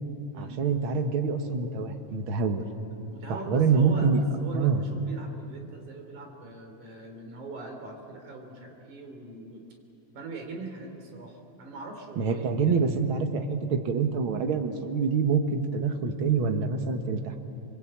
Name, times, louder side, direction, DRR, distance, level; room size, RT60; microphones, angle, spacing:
voice 1, 0.4-2.6 3.5-4.2 4.5-4.8 12.2-17.4, right 5 dB, 50° right, 5 dB, 2.1 m, -26 dB
voice 2, 3.1-9.6 10.1-12.8, right 3 dB, 75° right, 3 dB, 4.6 m, -41 dB
27.0 x 23.0 x 8.7 m, 2.8 s
omnidirectional pair, 3.5 m